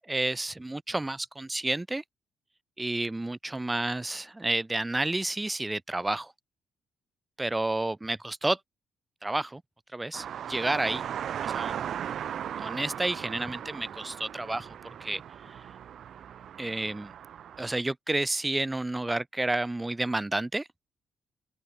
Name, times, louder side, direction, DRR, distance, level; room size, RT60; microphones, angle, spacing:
voice 1, 0.1-2.0 2.8-6.3 7.4-8.6 9.2-9.6 9.9-11.0 11.4-11.8 12.6-14.7 15.0-15.5 16.6-17.1 17.6-20.7, right 2 dB, 15° right, 0.6 m, -30 dB
sound 1, 10.1-17.8, right 9 dB, 65° right, 3.4 m, -37 dB
cardioid pair, 90°, 0 cm